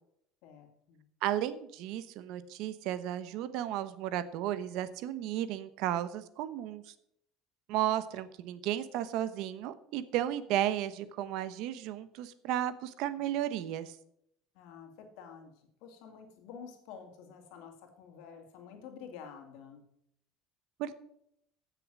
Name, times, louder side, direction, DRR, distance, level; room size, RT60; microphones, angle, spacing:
voice 1, 0.4-1.1 14.5-19.8, left 7 dB, 70° left, 4 dB, 2.4 m, -50 dB
voice 2, 1.2-6.9 7.7-13.9 20.8-20.9, right 12 dB, 60° right, 13 dB, 0.9 m, -34 dB
15.5 x 6.8 x 6.2 m, 0.74 s
cardioid pair, 165°, 0 cm